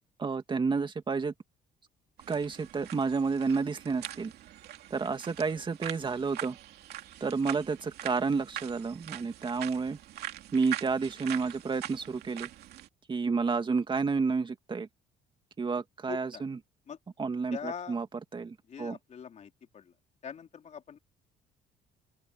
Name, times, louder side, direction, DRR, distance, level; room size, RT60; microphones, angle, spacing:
voice 1, 0.2-1.3 2.3-4.3 4.9-6.6 7.2-10.0 10.5-12.5 13.1-14.9 15.6-16.6 17.2-18.5 18.8-19.0, right 4 dB, 30° right, 2.3 m, -30 dB
sound 1, 2.2-12.9, right 13 dB, 75° right, 2.7 m, -43 dB
voice 2, 16.1-16.4 16.9-17.0 17.5-18.0 18.7-19.9 20.2-21.0, left 7 dB, 45° left, 3.3 m, -42 dB
open air
cardioid pair, 110°, 17 cm